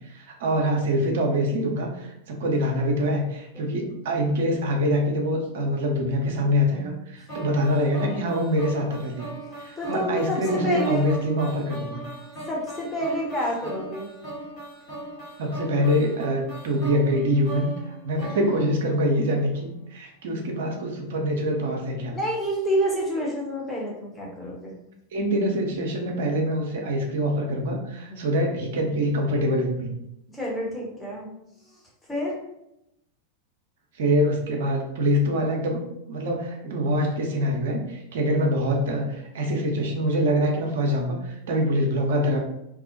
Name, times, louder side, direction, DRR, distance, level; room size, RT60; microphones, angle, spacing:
voice 1, 0.0-9.3 9.6-12.0 15.4-17.7 18.0-22.1 25.1-29.9 34.0-42.4, equal, 55° right, 2 dB, 0.5 m, -25 dB
sound 1, 7.3-19.5, right 2 dB, 35° left, 1.0 m, -39 dB
voice 2, 9.5-11.1 12.5-14.1 22.1-24.8 28.1-28.2 30.3-31.3 32.1-32.4, equal, 10° left, -4 dB, 0.8 m, -28 dB
2.3 x 2.1 x 2.6 m, 0.83 s
figure-of-eight pair, 90°, 0 cm